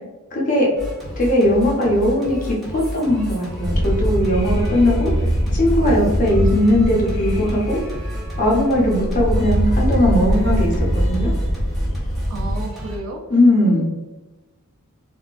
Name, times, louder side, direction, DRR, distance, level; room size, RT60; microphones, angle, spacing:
voice 1, 0.3-0.7 1.2-5.1 5.5-7.8 8.4-11.3 13.3-13.8, left 1 dB, 40° left, -3 dB, 0.8 m, -18 dB
Singing, 0.8-13.0, equal, ahead, 0.7 m, -31 dB
sound 1, 3.6-12.6, equal, 70° left, 0.8 m, -22 dB
voice 2, 12.3-13.2 13.6-13.8, right 2 dB, 75° right, 2 dB, 0.6 m, -32 dB
3.6 x 2.2 x 2.4 m, 1.1 s
head